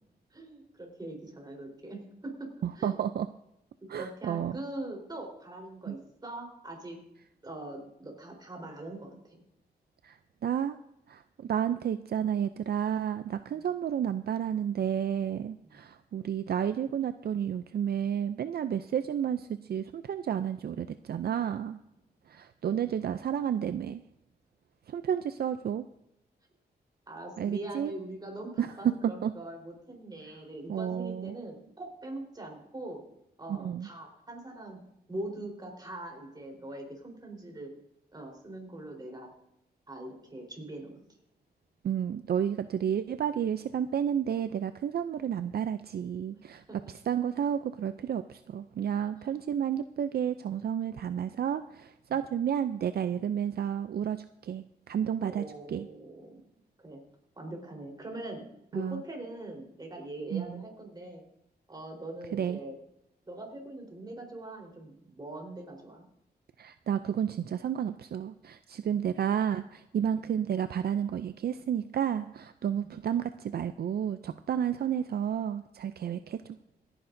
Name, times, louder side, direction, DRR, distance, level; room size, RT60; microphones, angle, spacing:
voice 1, 0.3-2.3 2.8-3.0 3.8-7.0 7.4-9.4 13.5-13.6 15.7-15.8 27.1-33.0 33.4-34.8 35.1-37.7 38.1-39.3 39.9-41.0 46.7-46.8 55.2-56.4 56.8-57.0 57.4-61.2 61.7-62.8 63.3-66.0, right 1 dB, 25° right, 1 dB, 3.9 m, -42 dB
voice 2, 2.6-3.3 3.9-4.6 5.9-6.0 10.0-10.8 11.1-21.8 22.3-24.0 24.9-25.8 27.4-27.9 28.6-28.9 29.2-29.3 30.7-31.3 33.5-33.9 41.8-46.6 47.1-55.9 58.7-59.0 60.3-60.6 62.3-62.6 66.6-76.6, right 9 dB, 70° right, 10 dB, 0.4 m, -31 dB
27.0 x 10.0 x 2.6 m, 0.82 s
wide cardioid pair, 125°, 17 cm